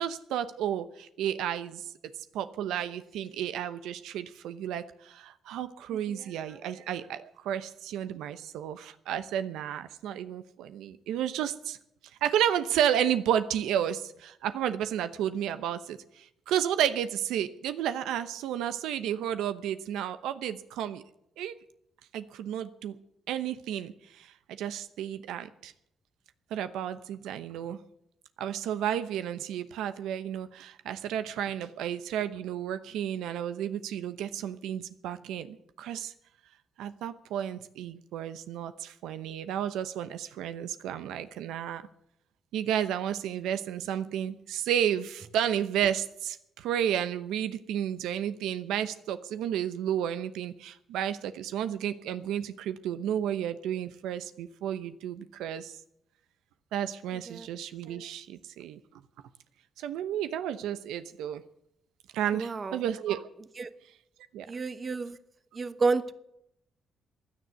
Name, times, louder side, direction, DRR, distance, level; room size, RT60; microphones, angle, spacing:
voice 1, 0.0-1.8 2.3-11.8 12.2-21.0 21.4-21.6 22.1-23.0 23.3-25.7 26.5-27.8 28.4-36.1 36.8-41.8 42.5-55.8 56.7-58.8 59.8-61.4 62.1-63.3 64.3-64.5, right 10 dB, 90° right, 11 dB, 0.8 m, -32 dB
voice 2, 62.3-62.8 63.6-63.7 64.5-65.2 65.5-66.1, right 4 dB, 35° right, 12 dB, 1.0 m, -31 dB
16.0 x 10.5 x 8.0 m, 0.77 s
cardioid pair, 90°, 0 cm